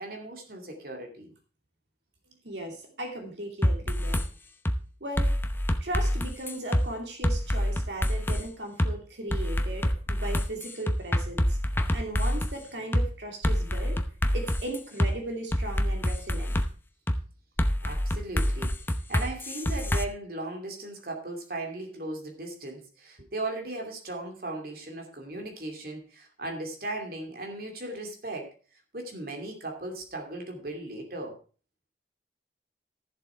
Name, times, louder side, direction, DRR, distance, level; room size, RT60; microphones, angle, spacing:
voice 1, 0.0-1.3 17.8-28.5 28.9-31.4, right 2 dB, 55° right, 2 dB, 2.7 m, -37 dB
voice 2, 2.4-4.3 5.0-5.4 5.8-11.6 11.9-14.0 14.3-16.5, right 1 dB, 80° right, 3 dB, 2.6 m, -37 dB
sound 1, 3.6-4.3 4.7-4.8 5.2-6.9 7.2-8.4 8.8-8.9 9.3-12.5 12.9-13.1 13.4-15.1 15.5-16.7 17.1-17.2 17.6-20.0, equal, 10° left, 0.7 m, -26 dB
13.5 x 7.5 x 4.6 m, 0.38 s
head